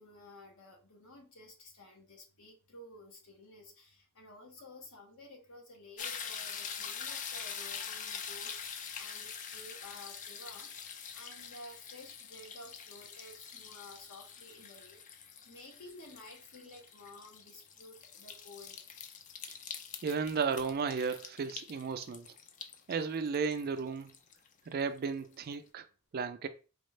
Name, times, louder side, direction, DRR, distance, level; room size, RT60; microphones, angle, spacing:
voice 1, 0.0-18.8, left 1 dB, 80° left, 1.2 m, -53 dB
sound 1, 6.0-25.0 25.5-25.6, left 7 dB, 35° left, 0.4 m, -45 dB
voice 2, 20.0-22.3 22.9-24.1 24.7-25.8 26.1-26.5, right 5 dB, 45° right, 0.4 m, -34 dB
4.2 x 2.3 x 3.1 m
head